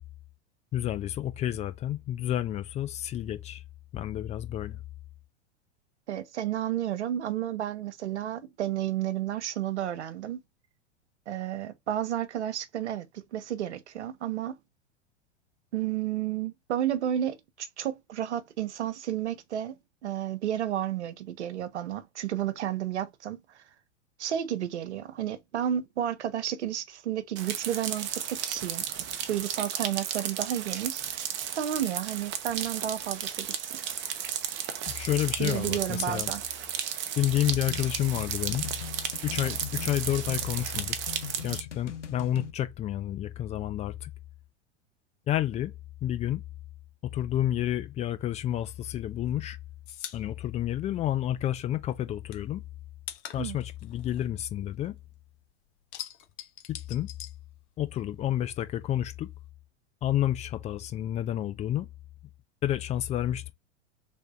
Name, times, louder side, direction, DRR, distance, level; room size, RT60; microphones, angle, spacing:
voice 1, 0.7-3.6 3.9-4.8 34.9-36.3 37.2-38.7 39.2-41.0 41.4-44.1 45.3-45.7 46.0-46.4 47.1-49.6 50.1-52.6 53.3-54.9 56.7-57.1 57.8-59.3 60.0-61.9 62.6-63.5, left 12 dB, 20° left, 0.4 m, -30 dB
voice 2, 6.1-10.4 11.3-13.1 13.3-14.6 15.7-23.4 24.2-28.9 29.3-31.0 31.6-33.8 35.4-36.4 53.4-53.6, right 11 dB, 75° right, 0.7 m, -32 dB
sound 1, 27.4-41.6, right 9 dB, 35° right, 0.7 m, -34 dB
sound 2, 37.3-42.5, left 7 dB, 85° left, 0.7 m, -41 dB
sound 3, 48.9-51.6 51.9-55.2 55.5-58.1 58.4-59.5, left 11 dB, 45° left, 0.8 m, -44 dB
3.5 x 2.6 x 3.6 m
figure-of-eight pair, 90°, 35 cm